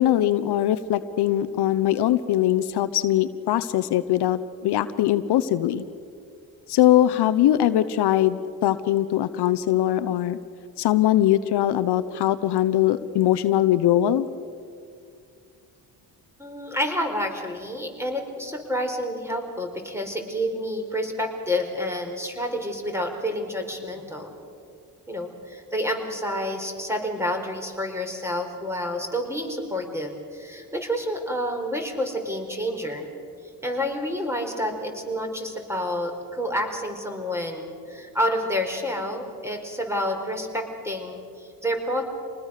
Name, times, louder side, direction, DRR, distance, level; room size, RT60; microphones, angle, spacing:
voice 1, 0.0-5.8 6.7-10.4 10.8-14.3, left 12 dB, 75° left, 13 dB, 0.9 m, -21 dB
voice 2, 16.4-24.3 25.1-33.1 33.6-42.0, equal, 5° right, 3 dB, 4.8 m, -29 dB
27.0 x 19.5 x 6.6 m, 2.4 s
cardioid pair, 75°, 40 cm